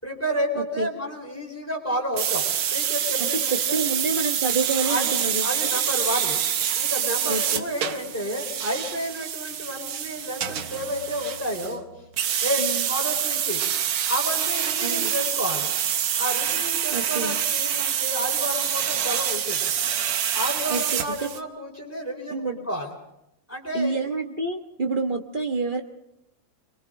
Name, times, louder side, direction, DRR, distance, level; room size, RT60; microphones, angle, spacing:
voice 1, 0.0-3.8 4.7-6.4 6.7-11.8 12.4-13.6 14.1-15.7 16.2-19.7 20.3-22.9 23.5-24.0, equal, 5° left, 0 dB, 4.4 m, -31 dB
sound 1, 2.2-11.8 12.2-21.4, right 9 dB, 90° right, 1.8 m, -26 dB
voice 2, 3.2-5.4 5.7-5.8 7.3-7.7 12.6-12.9 14.8-15.1 16.9-17.4 20.7-21.3 22.3-22.6 23.7-25.8, right 3 dB, 30° right, 3 dB, 1.2 m, -28 dB
29.0 x 23.0 x 3.9 m, 0.84 s
omnidirectional pair, 2.2 m